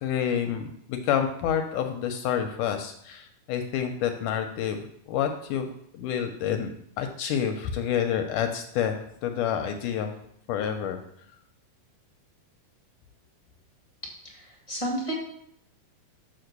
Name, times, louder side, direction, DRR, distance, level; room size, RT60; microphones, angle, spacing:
voice 1, 0.0-4.8 5.1-6.7 7.0-10.1 10.5-11.0, left 9 dB, 75° left, 6 dB, 2.0 m, -28 dB
voice 2, 14.2-15.1, right 1 dB, 20° left, -2 dB, 0.9 m, -32 dB
6.9 x 6.4 x 6.6 m, 0.70 s
omnidirectional pair, 4.1 m